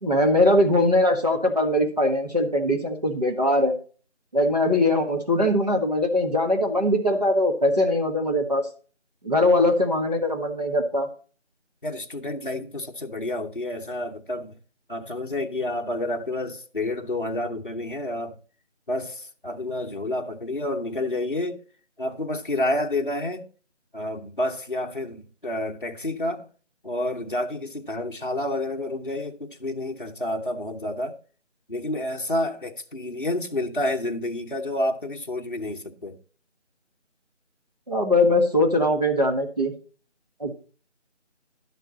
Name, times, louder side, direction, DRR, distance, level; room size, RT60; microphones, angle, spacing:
voice 1, 0.0-3.7 4.3-8.7 9.2-11.1 37.9-39.7 40.4-40.5, left 1 dB, 35° right, 1.6 m, -21 dB
voice 2, 11.8-14.5 14.9-18.3 18.9-21.6 22.0-23.5 23.9-26.5 26.8-31.2 31.7-36.2, left 1 dB, 45° left, 1.0 m, -29 dB
11.5 x 6.7 x 4.0 m
figure-of-eight pair, 180°, 36 cm